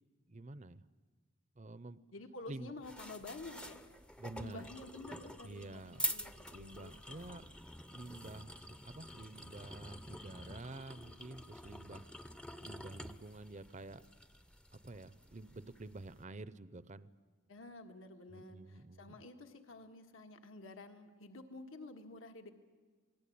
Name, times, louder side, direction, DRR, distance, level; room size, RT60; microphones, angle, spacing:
voice 1, 0.3-0.8 1.6-2.0 2.5-2.7 4.2-4.7 5.4-6.0 6.5-7.4 7.9-12.0 12.6-14.0 14.7-17.1 18.3-19.1, right 2 dB, 35° right, 16 dB, 0.7 m, -49 dB
voice 2, 2.1-3.9 4.4-7.2 17.5-22.5, left 2 dB, 70° left, 6 dB, 1.8 m, -50 dB
sound 1, 2.8-16.2, left 1 dB, 5° left, 0.7 m, -47 dB
27.5 x 19.5 x 8.6 m, 1.5 s
head